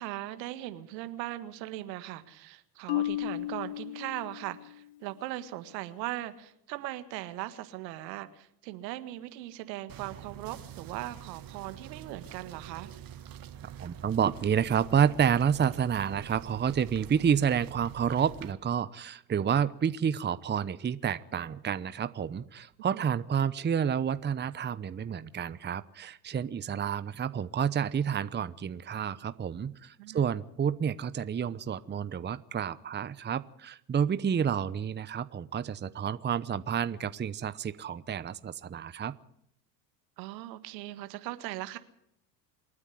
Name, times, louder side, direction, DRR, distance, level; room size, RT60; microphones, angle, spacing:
voice 1, 0.0-12.9 22.9-23.0 30.0-30.2 40.2-41.8, right 15 dB, 80° right, 11 dB, 1.9 m, -39 dB
Marimba xylophone, 2.9-4.9, left 15 dB, 55° left, 1.6 m, -34 dB
sound 1, 9.9-18.5, right 10 dB, 45° right, 2.0 m, -46 dB
voice 2, 13.8-39.1, right 8 dB, 20° right, 15 dB, 0.9 m, -29 dB
27.0 x 9.8 x 9.9 m, 0.75 s
hypercardioid pair, 85°, 50 cm